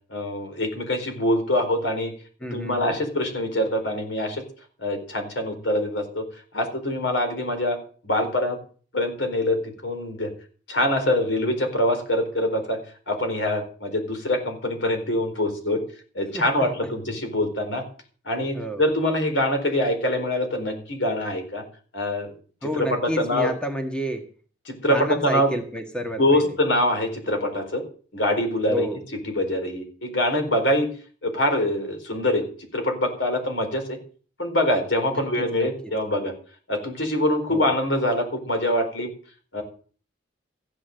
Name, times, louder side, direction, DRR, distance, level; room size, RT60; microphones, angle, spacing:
voice 1, 0.1-2.1 2.5-4.4 4.8-6.3 6.5-7.8 8.0-8.6 8.9-10.3 10.7-12.8 13.1-15.8 16.1-17.9 18.2-21.6 21.9-22.3 22.7-23.5 24.7-25.5 26.2-27.8 28.1-28.9 29.3-30.9 31.2-32.5 32.7-34.0 34.4-36.3 36.7-39.1 39.5-39.6, left 1 dB, 75° left, 5 dB, 4.4 m, -24 dB
voice 2, 2.4-3.0 16.3-16.7 18.5-18.9 22.6-24.3 24.8-26.5 28.7-29.0 35.1-35.2 35.6-35.7 37.5-37.7, equal, 5° left, 4 dB, 1.7 m, -30 dB
15.0 x 8.7 x 7.7 m, 0.43 s
head